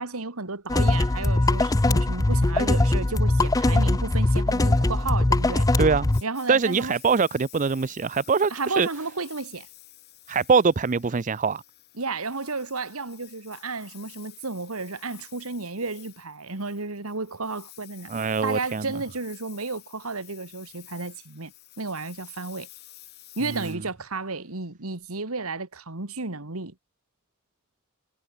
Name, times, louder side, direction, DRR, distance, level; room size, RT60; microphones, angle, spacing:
voice 1, 0.0-5.7 6.2-6.9 8.5-9.7 12.0-18.1 18.4-21.5 21.8-22.7 23.4-26.7, right 3 dB, 90° right, 2.2 m, -32 dB
sound 1, 0.7-6.2, left 2 dB, 15° left, 0.5 m, -21 dB
Engine, 6.1-24.6, left 15 dB, 50° left, 5.5 m, -50 dB
voice 2, 6.5-8.9 10.3-11.6 18.1-18.9, right 5 dB, 35° right, 0.5 m, -23 dB
head